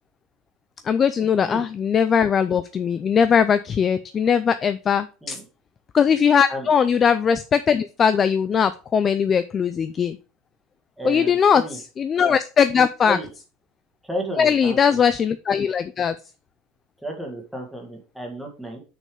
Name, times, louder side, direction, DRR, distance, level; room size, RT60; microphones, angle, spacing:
voice 1, 0.9-5.4 5.9-10.2 11.0-11.6 12.0-13.2 14.4-16.1, left 7 dB, 20° left, 12 dB, 0.3 m, -20 dB
voice 2, 11.0-11.8 13.1-13.3 14.1-15.0 17.0-18.8, equal, ahead, 1 dB, 1.7 m, -32 dB
6.4 x 5.4 x 5.2 m, 0.34 s
cardioid pair, 175°, 0 cm